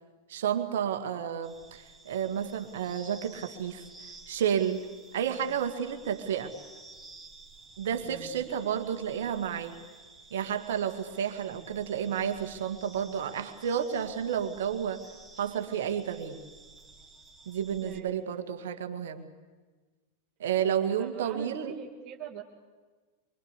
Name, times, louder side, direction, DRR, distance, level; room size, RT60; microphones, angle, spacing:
voice 1, 0.3-3.8 4.3-4.8 5.1-6.5 7.8-9.7 10.3-15.0 15.4-16.4 17.5-19.3 20.4-21.7, right 8 dB, 60° right, 8 dB, 2.1 m, -31 dB
sound 1, 1.4-18.0, right 3 dB, 10° right, 2.9 m, -53 dB
voice 2, 5.2-5.6 8.0-8.5 11.4-11.8 17.8-18.4 20.9-22.4, right 9 dB, 40° right, 0 dB, 2.0 m, -44 dB
25.0 x 24.5 x 8.4 m, 1.4 s
figure-of-eight pair, 90°, 0 cm